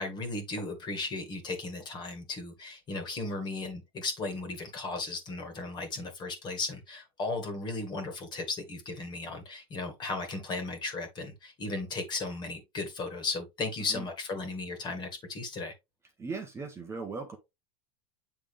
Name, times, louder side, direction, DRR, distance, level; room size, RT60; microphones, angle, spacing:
voice 1, 0.0-15.7, left 3 dB, 30° left, 2.1 m, -36 dB
voice 2, 16.2-17.4, right 4 dB, 15° right, 1.2 m, -38 dB
8.4 x 3.5 x 3.5 m
supercardioid pair, 135°, 16 cm